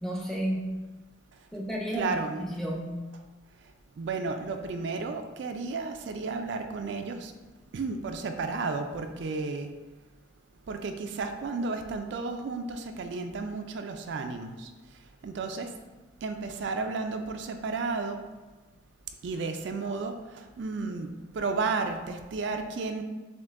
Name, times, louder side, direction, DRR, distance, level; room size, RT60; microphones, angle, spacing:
voice 1, 0.0-0.7 1.5-2.9, equal, ahead, -3 dB, 0.6 m, -32 dB
voice 2, 1.9-2.4 4.0-7.3 7.7-9.7 10.7-14.7 15.2-15.7 16.2-18.2 19.2-23.0, right 4 dB, 65° right, 6 dB, 0.3 m, -33 dB
7.2 x 2.6 x 2.5 m, 1.2 s
head